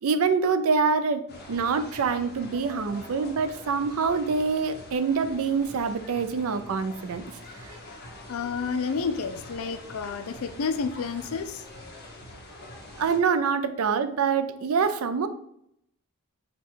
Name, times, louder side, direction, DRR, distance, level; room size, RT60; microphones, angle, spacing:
voice 1, 0.0-7.2 7.6-7.7 13.0-15.3, right 5 dB, 70° right, 10 dB, 0.4 m, -25 dB
sound 1, 1.3-13.2, left 1 dB, 45° left, 1.0 m, -45 dB
voice 2, 8.3-11.7, left 5 dB, 70° left, 10 dB, 0.4 m, -30 dB
5.1 x 2.3 x 4.6 m, 0.74 s
head